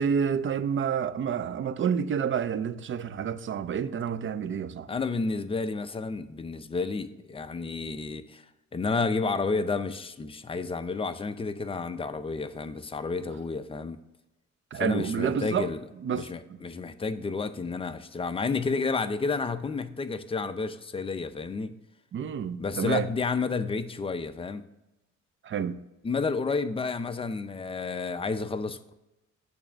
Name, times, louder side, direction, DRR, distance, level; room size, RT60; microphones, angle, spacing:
voice 1, 0.0-4.9 14.7-15.7 16.0-16.3 22.1-23.1 25.4-25.8, right 7 dB, 40° right, 0.5 m, -29 dB
voice 2, 4.9-8.4 8.7-14.0 14.7-15.8 16.1-21.8 22.6-24.6 26.0-28.9, left 4 dB, 20° left, 0.5 m, -31 dB
8.6 x 3.4 x 6.1 m
cardioid pair, 90°, 30 cm